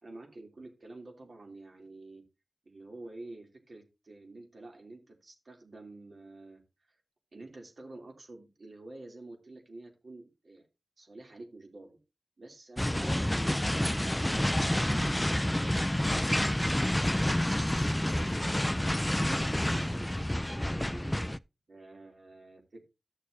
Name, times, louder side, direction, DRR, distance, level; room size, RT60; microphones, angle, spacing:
voice 1, 0.0-2.2 2.6-6.6 7.3-10.7 11.0-12.0 12.4-14.2 14.6-15.7 16.0-21.3 21.7-22.8, right 2 dB, 65° right, 2 dB, 2.9 m, -49 dB
sound 1, 12.8-21.4, left 1 dB, 10° left, 0.4 m, -29 dB
14.5 x 6.6 x 2.7 m, 0.26 s
wide cardioid pair, 80°, 0 cm